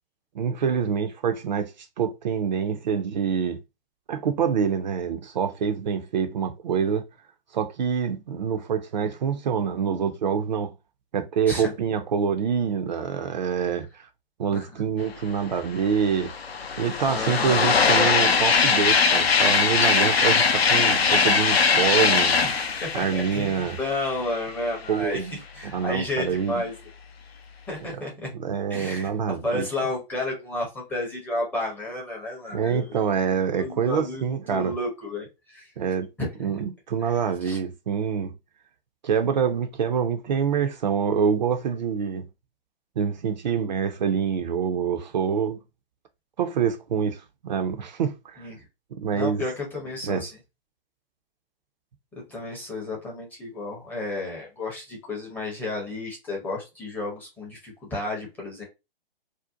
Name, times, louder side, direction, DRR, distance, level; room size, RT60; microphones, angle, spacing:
voice 1, 0.3-3.6 4.1-7.0 7.5-10.7 11.1-14.1 14.4-16.3 16.8-22.7 22.9-23.8 24.9-25.4 25.7-26.6 28.4-29.7 32.5-34.7 35.8-36.1 36.4-38.3 39.0-42.3 43.0-45.6 46.4-48.5 48.9-49.4 50.0-50.2, right 7 dB, 50° right, 0.4 m, -26 dB
sound 1, 15.5-15.6 15.9-24.5, left 5 dB, 85° left, 0.5 m, -21 dB
voice 2, 17.1-17.6 22.4-22.5 22.8-25.3 25.5-26.7 27.7-28.3 28.7-29.1 29.4-33.0 33.5-35.7 36.2-36.6 37.0-37.6 48.4-48.6 49.1-50.4 52.1-58.6, left 2 dB, 5° left, 0.5 m, -32 dB
2.6 x 2.1 x 2.4 m
figure-of-eight pair, 130°, 30 cm